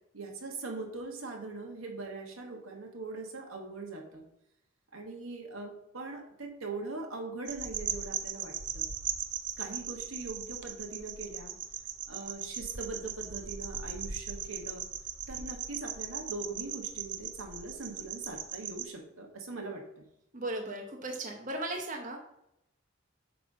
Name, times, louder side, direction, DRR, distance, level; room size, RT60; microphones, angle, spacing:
voice 1, 0.1-4.2 4.9-8.9 9.6-11.6 12.1-14.9 15.3-20.0, right 3 dB, 90° right, 1 dB, 1.8 m, -41 dB
sound 1, 7.5-18.9, right 8 dB, 55° right, 0.7 m, -38 dB
voice 2, 20.3-22.2, right 2 dB, 40° right, 2 dB, 1.0 m, -36 dB
8.5 x 3.5 x 5.5 m, 0.80 s
head